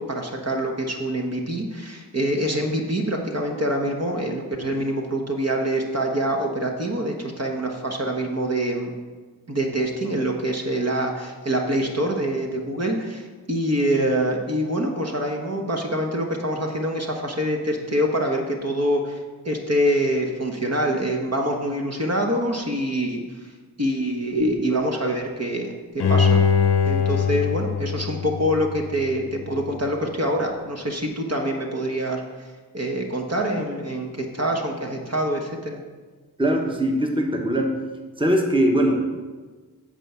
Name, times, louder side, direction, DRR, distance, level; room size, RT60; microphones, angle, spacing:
voice 1, 0.0-8.9 9.5-19.2 19.4-23.5 23.8-26.4 26.8-32.2 32.7-35.8, right 1 dB, 40° right, 1 dB, 1.3 m, -25 dB
Bowed string instrument, 26.0-29.1 29.5-29.6, left 7 dB, 75° left, 0.8 m, -22 dB
voice 2, 36.4-37.7 38.2-39.0, right 1 dB, 15° right, 2 dB, 1.3 m, -21 dB
9.0 x 4.6 x 7.0 m, 1.4 s
cardioid pair, 45°, 39 cm